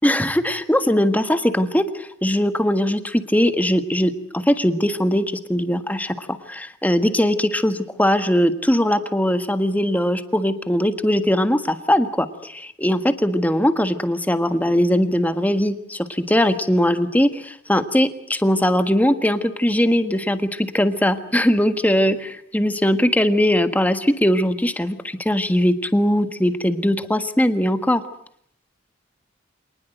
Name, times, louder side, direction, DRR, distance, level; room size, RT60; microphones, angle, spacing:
voice 1, 0.0-28.0, equal, 10° left, 9 dB, 1.5 m, -20 dB
26.0 x 19.5 x 7.9 m, 0.68 s
head